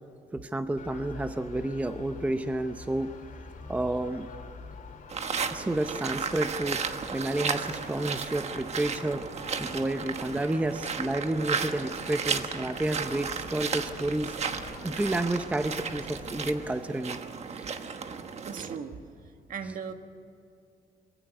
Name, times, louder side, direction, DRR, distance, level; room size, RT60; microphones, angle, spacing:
voice 1, 0.3-3.1 3.7-4.3 5.5-6.8 7.1-9.2 9.6-14.4 14.8-17.2 17.5-17.9, right 1 dB, 10° right, 9 dB, 0.7 m, -30 dB
sound 1, 0.8-16.7, left 4 dB, 55° left, 2.7 m, -47 dB
sound 2, 5.1-18.8, right 6 dB, 45° right, 1.2 m, -34 dB
voice 2, 18.4-18.9 19.5-19.9, right 6 dB, 60° right, 7 dB, 1.6 m, -37 dB
22.5 x 16.0 x 9.5 m, 2.5 s
cardioid pair, 150°, 16 cm